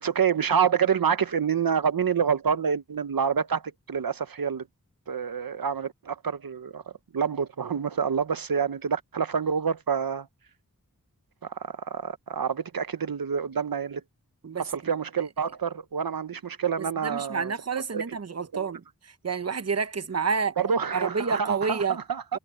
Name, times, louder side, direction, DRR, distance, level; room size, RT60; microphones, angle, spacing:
voice 1, 0.0-3.6 3.9-4.6 5.1-6.8 7.1-10.3 11.4-14.0 14.6-17.5 17.9-18.1 18.5-18.6 20.6-22.4, right 7 dB, 75° right, 0.7 m, -27 dB
voice 2, 16.8-20.6 20.9-22.0, right 5 dB, 45° right, 0.8 m, -29 dB
wide cardioid pair, 60°, 35 cm